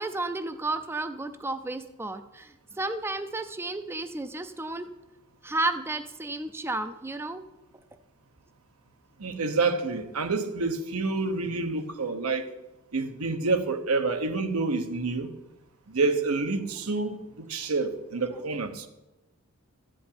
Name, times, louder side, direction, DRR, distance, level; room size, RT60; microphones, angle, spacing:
voice 1, 0.0-4.9 5.4-7.4 18.3-18.4, right 2 dB, 10° right, 0.4 m, -32 dB
voice 2, 9.2-12.5 12.9-15.3 15.9-18.9, right 3 dB, 80° right, 1.1 m, -28 dB
12.5 x 5.2 x 8.8 m
head